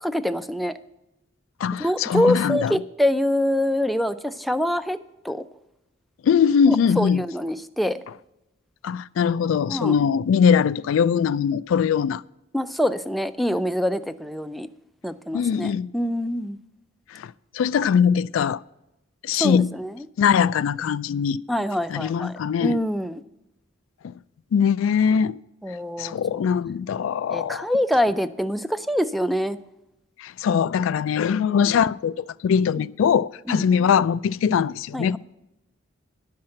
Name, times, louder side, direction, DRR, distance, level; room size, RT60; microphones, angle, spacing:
voice 1, 0.0-0.7 1.8-5.0 5.2-5.4 6.7-8.0 9.7-10.0 12.5-14.7 15.0-16.6 19.3-20.1 21.5-23.2 25.6-26.4 27.3-29.6 31.4-31.6 32.8-32.9 33.5-33.6 34.9-35.2, equal, ahead, 0.3 m, -25 dB
voice 2, 1.6-2.7 6.2-7.2 8.8-12.2 15.3-15.9 17.1-18.6 19.2-19.7 20.2-21.4 21.9-22.8 24.5-25.4 26.0-27.7 30.2-35.2, left 7 dB, 90° left, 0.3 m, -21 dB
11.5 x 5.7 x 7.6 m
head